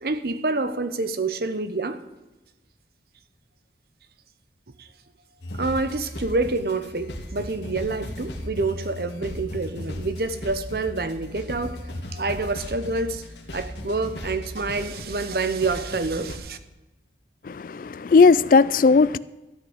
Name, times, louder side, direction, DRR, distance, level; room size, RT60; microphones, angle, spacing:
voice 1, 0.0-2.0 4.8-4.9 5.5-16.6, right 3 dB, 55° right, 0.8 m, -27 dB
sound 1, 5.4-16.4, left 1 dB, 75° left, 2.1 m, -36 dB
voice 2, 17.4-19.2, left 4 dB, 50° left, 0.3 m, -17 dB
13.5 x 6.2 x 8.6 m
head